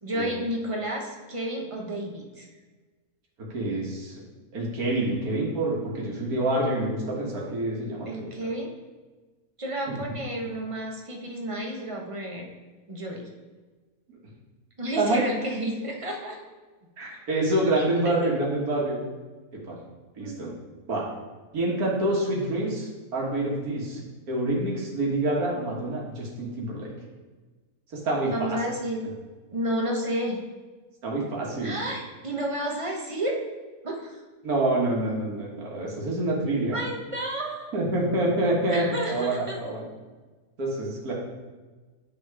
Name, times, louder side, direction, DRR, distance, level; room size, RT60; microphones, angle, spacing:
voice 1, 0.0-2.5 8.0-8.7 9.6-12.5 12.9-13.2 14.8-16.4 17.7-17.8 20.2-20.4 28.3-29.1 29.5-30.4 31.6-33.4 33.8-34.2 36.7-37.8 38.7-39.6, right 1 dB, 25° right, 0 dB, 0.9 m, -31 dB
voice 2, 3.5-4.2 4.5-8.1 9.9-10.0 15.0-15.2 17.0-19.0 19.6-19.8 20.2-20.5 20.9-21.1 21.5-24.0 24.3-26.9 27.9-28.6 31.0-31.8 34.4-36.8 37.7-39.9 40.6-41.1, right 1 dB, 70° right, -3 dB, 2.0 m, -27 dB
9.0 x 4.0 x 4.7 m, 1.3 s
omnidirectional pair, 1.7 m